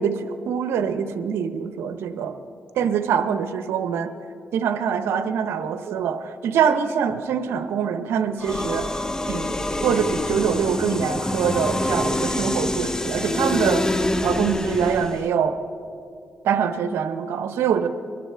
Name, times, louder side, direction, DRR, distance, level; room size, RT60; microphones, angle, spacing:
voice 1, 0.0-2.4 2.8-4.1 4.5-9.6 9.8-15.6 16.4-17.9, right 7 dB, 85° right, 9 dB, 0.8 m, -24 dB
sound 1, 8.4-15.3, left 1 dB, 15° left, 0.6 m, -26 dB
23.5 x 12.0 x 3.4 m, 2.5 s
cardioid pair, 70°, 4 cm